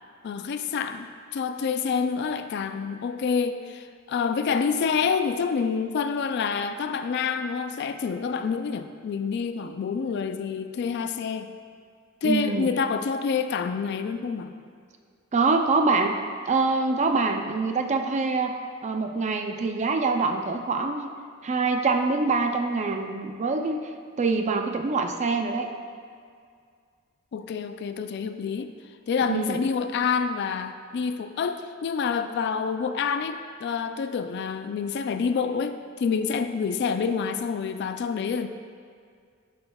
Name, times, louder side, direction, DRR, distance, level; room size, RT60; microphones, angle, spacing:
voice 1, 0.2-11.5 12.2-14.5 27.3-28.7 29.1-38.5, left 6 dB, 55° left, 9 dB, 0.3 m, -27 dB
voice 2, 12.2-12.7 15.3-16.1 16.5-18.5 18.8-21.1 21.4-23.9 24.2-25.7 29.3-29.6, right 3 dB, 35° right, 5 dB, 0.4 m, -25 dB
11.0 x 5.4 x 2.3 m, 2.2 s
head